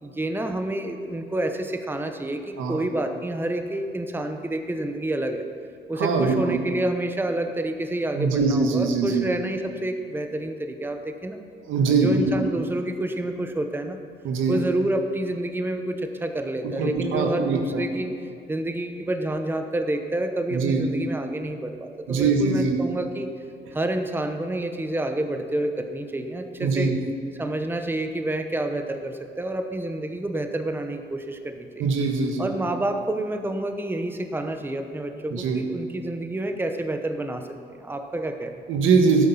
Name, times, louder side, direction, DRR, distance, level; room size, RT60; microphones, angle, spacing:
voice 1, 0.0-5.5 5.9-11.4 11.9-14.0 14.5-18.1 18.5-23.3 23.7-26.9 27.4-31.9 32.4-37.5 37.8-38.5, right 1 dB, 10° right, 6 dB, 0.9 m, -28 dB
voice 2, 5.9-6.6 8.1-9.2 11.7-12.3 14.2-14.6 16.8-17.8 20.5-20.8 22.1-22.8 26.6-26.9 31.8-32.5 35.3-35.6 38.7-39.3, right 4 dB, 85° right, 3 dB, 1.5 m, -22 dB
12.5 x 8.8 x 5.8 m, 2.3 s
cardioid pair, 90°, 20 cm